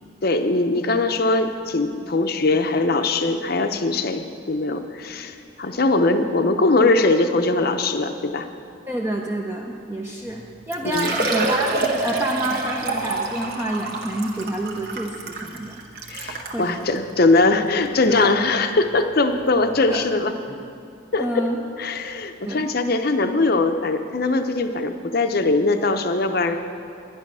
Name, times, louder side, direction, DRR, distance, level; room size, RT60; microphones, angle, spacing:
voice 1, 0.2-8.5 10.8-11.2 16.1-20.3 21.1-21.5 21.8-26.6, left 3 dB, 50° left, 7 dB, 0.7 m, -21 dB
voice 2, 8.9-15.8 16.5-16.9 18.2-18.3 19.9-20.1 20.5-20.6 21.2-21.6 22.4-22.7, right 1 dB, 10° right, -1 dB, 0.6 m, -28 dB
Liquid, 10.3-10.4 10.7-16.6 17.3-17.4 17.9-18.0 19.6-19.7 19.9-20.0, right 3 dB, 50° right, 1.1 m, -27 dB
11.0 x 10.5 x 6.1 m, 2.4 s
head